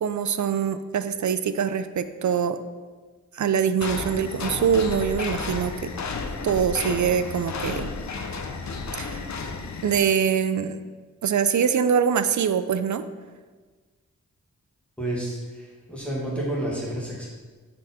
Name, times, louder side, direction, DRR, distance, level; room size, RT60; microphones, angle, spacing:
voice 1, 0.0-2.6 3.3-5.9 6.4-7.9 9.0-9.3 9.8-10.8 11.2-13.0, right 7 dB, 65° right, 11 dB, 0.4 m, -24 dB
sound 1, 3.8-10.0, left 4 dB, 60° left, 0.6 m, -32 dB
voice 2, 15.0-17.3, right 1 dB, 5° left, -6 dB, 1.9 m, -30 dB
6.2 x 4.5 x 4.3 m, 1.4 s
wide cardioid pair, 80°, 31 cm